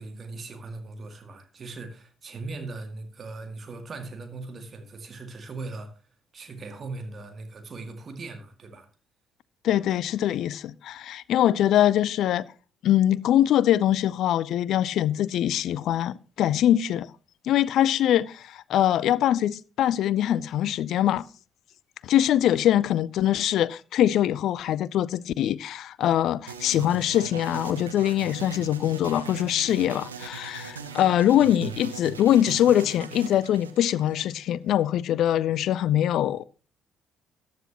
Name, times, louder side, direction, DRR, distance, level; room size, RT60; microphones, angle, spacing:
voice 1, 0.0-5.9 6.3-8.9, right 3 dB, 40° right, 2.0 m, -39 dB
voice 2, 9.6-12.5 12.8-17.1 17.4-21.3 22.0-36.4, left 11 dB, 55° left, 0.4 m, -23 dB
sound 1, 26.5-34.5, right 7 dB, 80° right, 0.8 m, -40 dB
14.5 x 10.5 x 2.9 m
figure-of-eight pair, 45°, 0 cm